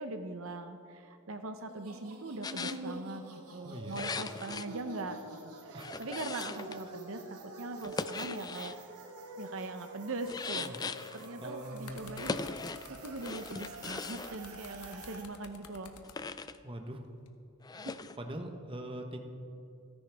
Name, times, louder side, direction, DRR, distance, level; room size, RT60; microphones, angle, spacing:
voice 1, 0.0-3.2 3.5-8.8 9.4-10.8 11.1-15.9 17.7-18.0, right 2 dB, 60° right, 8 dB, 0.7 m, -41 dB
sound 1, 1.7-15.2, right 1 dB, 85° right, 1.8 m, -47 dB
Clean Creaks, 2.4-2.8 3.9-4.7 5.8-6.8 7.8-8.8 10.3-11.3 12.2-12.9 13.2-14.3 16.0-16.6 17.6-18.2, left 4 dB, 15° left, 0.3 m, -39 dB
voice 2, 3.6-4.0 5.7-5.9 10.6-10.8 11.4-12.2 16.6-17.0 18.2-19.2, right 1 dB, 25° right, 4 dB, 1.1 m, -42 dB
sound 2, 11.7-16.2 17.0-17.3, left 5 dB, 85° left, 1.2 m, -52 dB
27.0 x 11.0 x 3.5 m, 2.6 s
head